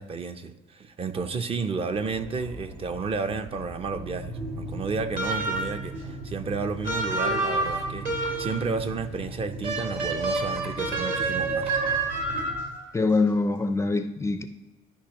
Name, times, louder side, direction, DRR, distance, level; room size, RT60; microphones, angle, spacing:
voice 1, 0.0-11.7, right 4 dB, 35° right, 0.6 m, -32 dB
sound 1, 1.9-12.6, right 2 dB, 75° right, 1.5 m, -39 dB
sound 2, 5.2-5.9 6.8-8.7 9.6-12.8, right 3 dB, 55° right, 1.8 m, -28 dB
voice 2, 12.9-14.5, left 3 dB, 15° left, 0.4 m, -24 dB
12.0 x 5.5 x 3.0 m
cardioid pair, 110°, 17 cm